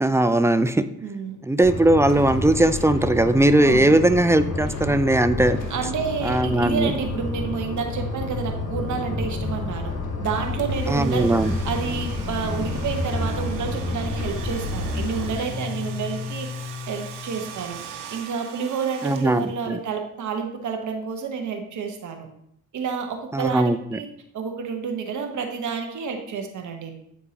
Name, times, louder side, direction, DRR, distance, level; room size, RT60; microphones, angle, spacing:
voice 1, 0.0-0.8 1.4-5.6 6.2-6.9 10.9-11.5 19.0-19.8 23.3-24.0, right 1 dB, 10° right, 11 dB, 0.3 m, -19 dB
voice 2, 1.0-1.4 3.6-4.0 5.7-9.9 10.2-11.3 11.6-16.5 16.9-17.8 18.1-22.3 22.7-24.1 24.3-26.9, right 6 dB, 65° right, 4 dB, 1.1 m, -29 dB
sound 1, 1.6-15.3, left 2 dB, 55° left, 1.5 m, -29 dB
Domestic sounds home sounds, 10.6-19.7, right 7 dB, 90° right, 0.7 m, -41 dB
Guitar, 15.4-18.0, left 6 dB, 75° left, 1.1 m, -35 dB
8.7 x 4.5 x 2.9 m, 0.72 s
cardioid pair, 80°, 31 cm